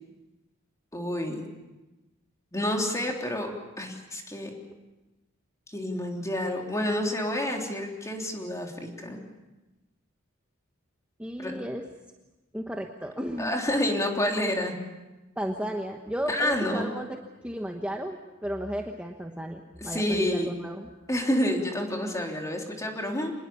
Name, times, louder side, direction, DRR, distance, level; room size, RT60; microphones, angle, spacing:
voice 1, 0.9-1.4 2.5-3.5 3.8-4.5 5.7-9.2 11.4-11.6 13.4-14.8 16.3-16.9 19.8-20.5 21.1-23.3, left 1 dB, 15° left, 1 dB, 3.4 m, -29 dB
voice 2, 11.2-11.9 12.5-13.5 15.4-20.9, equal, 5° right, 3 dB, 1.2 m, -34 dB
26.0 x 20.5 x 7.1 m, 1.1 s
head